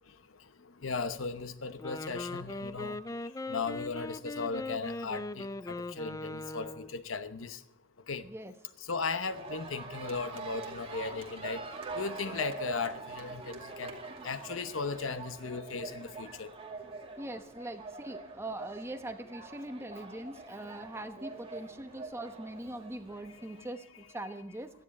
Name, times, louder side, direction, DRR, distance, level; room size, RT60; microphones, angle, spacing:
voice 1, 0.8-3.0 3.5-7.6 8.1-8.2 8.9-11.6 11.9-14.0 14.2-16.5, left 4 dB, 70° left, 0.9 m, -36 dB
Wind instrument woodwind instrument, 1.7-7.0, left 2 dB, 15° left, 0.4 m, -40 dB
sound 1, 9.2-23.6, right 3 dB, 30° right, 2.4 m, -44 dB
voice 2, 17.2-23.8 24.1-24.7, right 1 dB, 15° right, 1.1 m, -41 dB
17.5 x 13.5 x 4.2 m
head